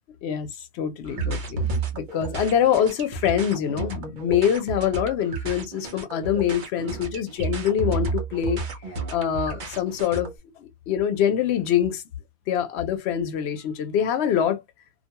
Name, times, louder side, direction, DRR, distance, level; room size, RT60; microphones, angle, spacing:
voice 1, 0.7-8.6 9.1-10.3 10.6-12.0 12.5-14.6, left 9 dB, 80° left, 0.8 m, -24 dB
sound 1, 1.0-10.3, right 3 dB, 50° right, 0.8 m, -31 dB
2.5 x 2.2 x 2.8 m
omnidirectional pair, 1.1 m